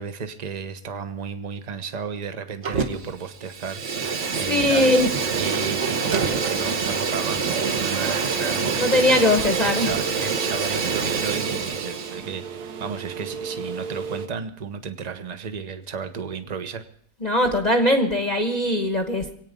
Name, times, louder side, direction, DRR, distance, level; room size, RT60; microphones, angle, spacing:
voice 1, 0.0-4.9 5.3-7.4 7.7-16.8, right 6 dB, 30° right, 9 dB, 0.9 m, -33 dB
Fire, 2.6-3.2 3.4-12.2, right 5 dB, 50° right, 1.5 m, -26 dB
voice 2, 4.5-5.1 8.8-9.9 17.2-19.3, left 1 dB, 30° left, 4 dB, 1.1 m, -20 dB
sound 1, 4.8-14.3, right 6 dB, 75° right, 1.5 m, -35 dB
25.0 x 9.2 x 5.2 m, 0.65 s
omnidirectional pair, 1.7 m